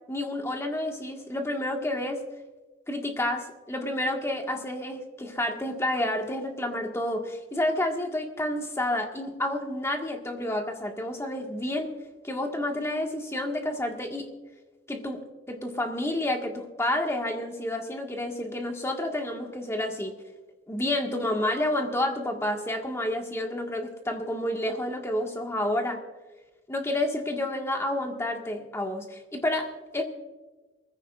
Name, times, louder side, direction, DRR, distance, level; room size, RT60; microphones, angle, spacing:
voice 1, 0.1-2.2 2.9-11.9 12.2-14.3 14.9-15.2 15.5-20.1 20.7-26.0 26.7-29.7 29.9-30.0, left 1 dB, 15° left, 2 dB, 1.6 m, -29 dB
23.0 x 15.0 x 2.4 m, 1.2 s
head